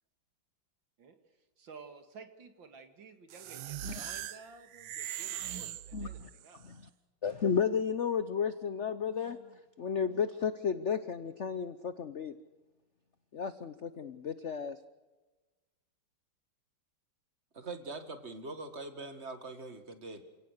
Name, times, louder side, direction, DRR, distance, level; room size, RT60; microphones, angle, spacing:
voice 1, 1.6-6.6, right 4 dB, 65° right, 7 dB, 2.7 m, -53 dB
sound 1, 3.3-6.6, right 12 dB, 80° right, 1.7 m, -41 dB
voice 2, 5.9-6.3 6.6-6.8 7.2-12.3 13.3-14.8, left 6 dB, 55° left, 12 dB, 0.8 m, -33 dB
voice 3, 17.5-20.2, right 3 dB, 35° right, 8 dB, 2.1 m, -43 dB
29.0 x 17.5 x 6.6 m, 1.2 s
omnidirectional pair, 2.2 m